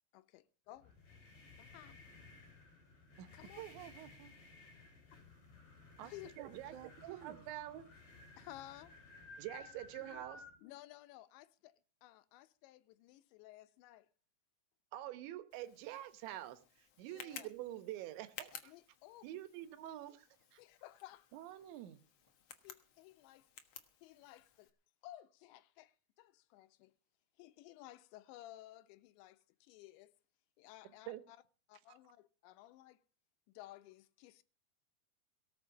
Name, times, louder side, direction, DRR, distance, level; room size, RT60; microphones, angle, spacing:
voice 1, 0.1-0.9 1.6-2.0 3.4-3.6 6.0-6.3 8.4-8.9 10.0-10.3 10.6-11.7 12.0-14.1 17.1-17.5 18.5-19.3 20.6-21.3 22.6-23.5 24.0-24.7 25.0-26.9 27.4-30.1 30.6-31.4 31.7-33.0 33.5-34.4, left 15 dB, 90° left, 3.1 m, -56 dB
sound 1, 0.8-10.6, left 3 dB, 40° left, 4.7 m, -57 dB
voice 2, 3.6-4.3 6.0-7.5 21.3-22.1, right 12 dB, 70° right, 1.9 m, -52 dB
voice 3, 6.4-6.7 7.0-7.8 9.4-10.4 14.9-16.6 17.0-18.7 19.2-20.6 31.1-31.2, right 14 dB, 90° right, 3.4 m, -46 dB
Tick, 15.5-24.7, left 8 dB, 75° left, 1.4 m, -56 dB
18.0 x 7.4 x 7.1 m
omnidirectional pair, 5.1 m